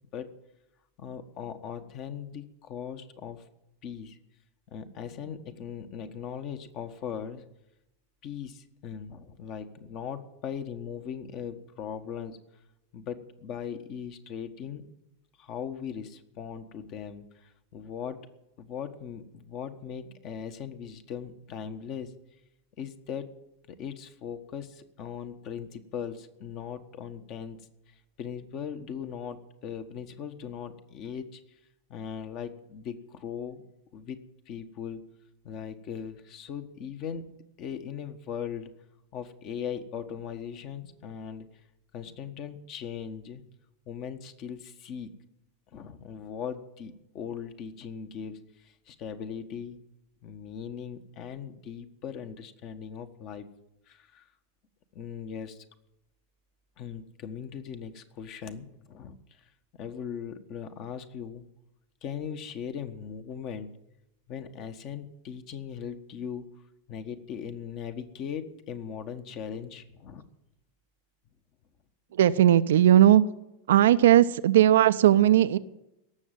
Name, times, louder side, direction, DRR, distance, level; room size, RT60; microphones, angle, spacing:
voice 1, 1.0-3.5 3.8-4.2 4.7-7.4 8.2-12.4 12.9-14.8 15.4-18.3 18.6-22.1 22.8-23.3 23.7-27.7 28.2-31.4 31.9-33.6 33.9-35.1 35.4-37.2 37.6-38.7 39.1-41.5 41.9-43.4 43.9-45.2 45.7-49.8 50.2-53.4 53.9-54.2 54.9-55.6 56.8-59.4 59.8-61.5 62.0-63.7 64.3-66.6 66.9-70.2, left 7 dB, 40° left, 9 dB, 1.4 m, -39 dB
voice 2, 72.1-73.2 73.7-75.6, right 12 dB, 60° right, 12 dB, 0.6 m, -18 dB
17.5 x 7.2 x 9.4 m, 0.89 s
figure-of-eight pair, 90°, 0 cm